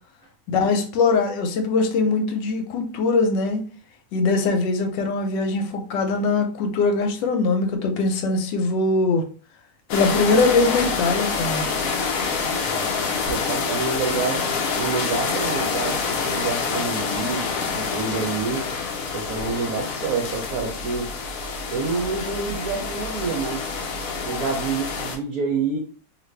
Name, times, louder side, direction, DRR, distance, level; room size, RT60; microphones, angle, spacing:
voice 1, 0.5-3.6 4.1-9.3 9.9-11.7, left 3 dB, 85° left, 1.3 m, -22 dB
sound 1, 9.9-25.2, left 5 dB, 65° left, 0.9 m, -27 dB
voice 2, 12.6-14.5 14.8-18.7 19.1-21.1 21.7-23.8 24.2-25.8, right 4 dB, 65° right, 0.9 m, -28 dB
2.8 x 2.5 x 3.2 m
omnidirectional pair, 1.9 m